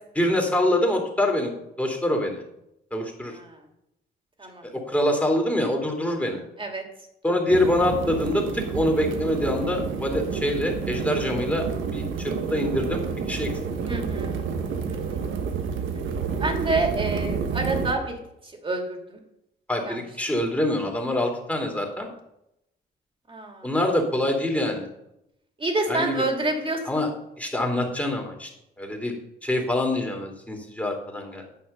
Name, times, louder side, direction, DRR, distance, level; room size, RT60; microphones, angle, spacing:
voice 1, 0.2-1.5 1.8-2.4 2.9-3.3 4.6-6.4 7.2-11.7 11.9-13.0 13.3-13.5 19.7-22.1 23.6-24.9 25.9-26.2 26.9-27.1 27.4-28.5 28.8-29.1 29.4-31.4, left 1 dB, 5° left, 2 dB, 2.9 m, -25 dB
sound 1, 7.5-17.9, right 6 dB, 80° right, 1.3 m, -29 dB
voice 2, 13.9-14.4 14.9-15.3 16.4-19.2 19.8-20.0 23.3-23.7 25.6-27.0, right 2 dB, 25° right, 2 dB, 2.6 m, -28 dB
9.6 x 5.7 x 6.7 m, 0.83 s
cardioid pair, 90°, 20 cm